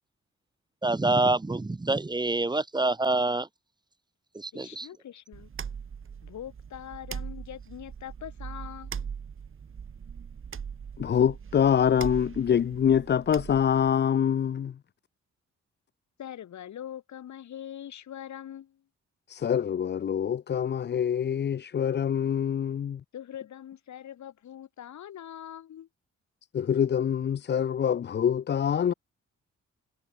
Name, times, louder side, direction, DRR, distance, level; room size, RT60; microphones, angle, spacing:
voice 1, 0.8-3.5 4.3-4.9, right 2 dB, 15° right, 1.2 m, -26 dB
voice 2, 4.5-5.5 6.2-9.1 16.2-18.8 23.1-25.9, left 10 dB, 75° left, 1.9 m, -42 dB
sound 1, 5.3-13.9, right 7 dB, 45° right, 4.4 m, -40 dB
voice 3, 11.0-14.8 19.3-23.0 26.5-28.9, left 8 dB, 35° left, 0.5 m, -25 dB
wide cardioid pair, 165°, 29 cm